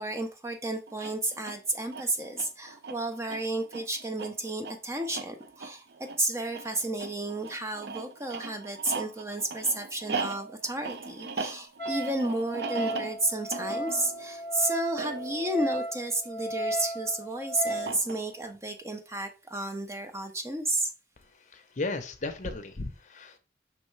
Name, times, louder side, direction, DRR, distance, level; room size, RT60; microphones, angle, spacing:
voice 1, 0.0-5.8 6.2-20.9, right 2 dB, 15° right, 6 dB, 0.5 m, -32 dB
sound 1, 0.9-16.6 17.7-18.5, right 4 dB, 65° right, 0.5 m, -39 dB
Wind instrument woodwind instrument, 11.8-18.0, equal, 80° right, 2.1 m, -35 dB
voice 2, 21.2-23.4, left 3 dB, 40° left, 8 dB, 0.6 m, -36 dB
5.4 x 3.1 x 3.1 m, 0.32 s
head